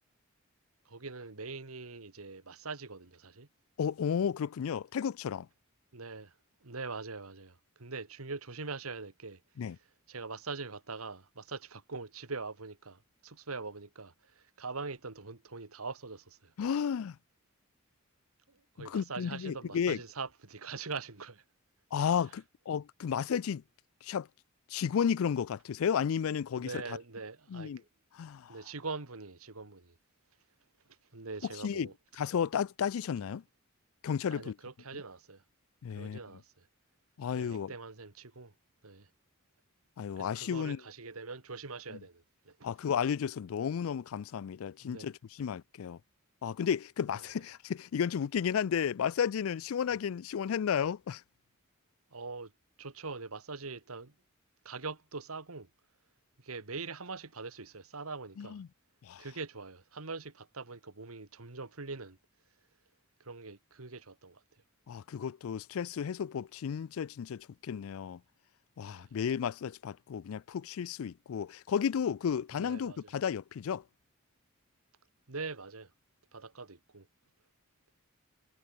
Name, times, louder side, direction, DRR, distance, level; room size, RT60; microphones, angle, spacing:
voice 1, 0.9-3.5 5.9-6.4 6.6-9.4 10.1-16.5 18.5-21.4 26.6-27.9 28.5-30.0 31.1-31.9 33.2-33.3 34.3-35.4 35.9-36.7 37.3-38.5 38.8-39.1 40.2-42.6 44.8-45.1 47.1-47.3 52.1-52.5 52.8-54.1 54.7-55.7 56.4-58.6 59.2-62.2 63.2-64.4 66.7-66.8 68.9-69.1 72.5-73.1 75.3-75.9 76.3-77.1, right 4 dB, 85° right, 1.8 m, -43 dB
voice 2, 3.8-5.5 9.6-9.8 16.6-17.2 18.8-20.0 21.9-23.6 24.0-24.3 24.7-26.8 27.5-27.8 28.2-28.5 31.6-31.9 32.2-33.4 34.0-34.5 35.8-36.2 37.2-37.7 40.0-40.8 42.6-45.1 45.4-46.0 46.4-51.2 58.4-58.7 59.0-59.2 64.9-68.2 68.8-73.8, left 7 dB, 75° left, 0.4 m, -33 dB
head